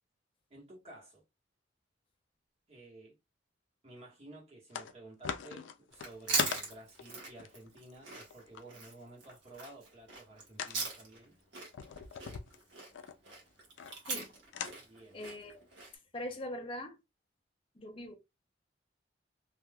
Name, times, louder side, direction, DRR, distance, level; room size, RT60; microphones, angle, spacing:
voice 1, 0.5-1.2 2.7-3.1 3.8-11.4 14.8-15.2, right 2 dB, 35° right, 1.3 m, -53 dB
sound 1, 4.7-4.9 5.2-8.6 10.6-10.8 11.7-13.1 13.8-14.3 14.5-14.8, left 7 dB, 80° left, 0.4 m, -39 dB
Chewing mastication, 5.9-11.3 11.5-15.9, right 4 dB, 70° right, 1.3 m, -40 dB
voice 2, 15.1-15.6 16.1-17.0 17.7-18.1, left 1 dB, 30° left, 0.7 m, -41 dB
3.4 x 2.6 x 2.2 m
head